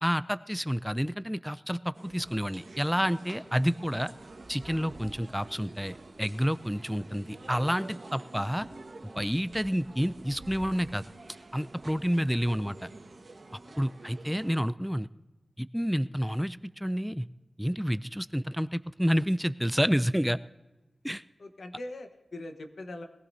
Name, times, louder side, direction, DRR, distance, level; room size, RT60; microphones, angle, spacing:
voice 1, 0.0-4.1 4.5-8.7 9.2-11.0 11.5-12.9 13.8-15.1 15.6-17.3 17.6-20.4 21.0-21.2, equal, ahead, 14 dB, 0.4 m, -29 dB
sound 1, 1.9-14.6, right 2 dB, 60° right, 1.4 m, -48 dB
voice 2, 13.6-13.9 21.4-23.1, left 2 dB, 80° left, 6 dB, 1.2 m, -42 dB
21.0 x 15.5 x 2.8 m, 1.1 s
wide cardioid pair, 75°, 0 cm